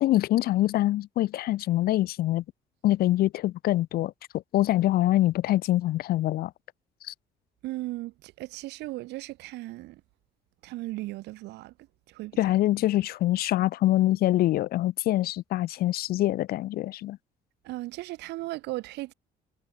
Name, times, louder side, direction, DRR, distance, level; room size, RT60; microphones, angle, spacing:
voice 1, 0.0-2.4 2.8-6.5 7.0-7.1 12.4-17.2, left 15 dB, 65° left, 0.6 m, -25 dB
voice 2, 7.6-10.0 10.6-11.7 12.1-12.5 17.6-19.1, right 19 dB, 85° right, 3.1 m, -36 dB
cardioid pair, 110°, 17 cm